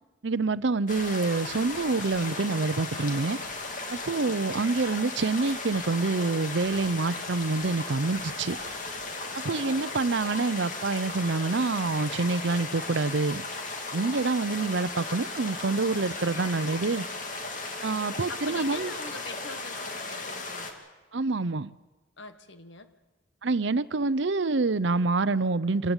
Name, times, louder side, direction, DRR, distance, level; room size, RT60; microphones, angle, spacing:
voice 1, 0.2-3.4 3.9-8.6 9.3-13.4 13.9-17.0 17.8-18.9 21.1-21.7 23.4-25.9, right 3 dB, 70° right, 16 dB, 0.7 m, -27 dB
sound 1, 0.9-20.7, left 3 dB, 40° left, 2.2 m, -36 dB
voice 2, 4.0-4.6 9.3-9.9 18.3-20.7 22.2-22.9, left 3 dB, 70° left, 10 dB, 1.4 m, -44 dB
26.0 x 15.5 x 9.0 m, 1.2 s
head